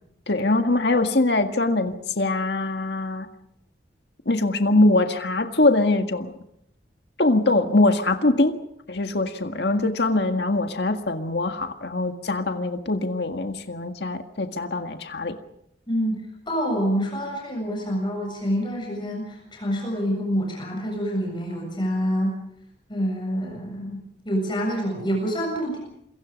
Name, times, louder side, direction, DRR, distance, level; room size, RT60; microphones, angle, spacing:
voice 1, 0.3-3.3 4.2-6.3 7.2-8.6 8.9-15.3, left 2 dB, 65° left, 6 dB, 1.8 m, -22 dB
voice 2, 15.9-22.3 22.9-25.8, equal, 25° left, 0 dB, 7.5 m, -27 dB
27.5 x 23.5 x 5.3 m, 0.75 s
head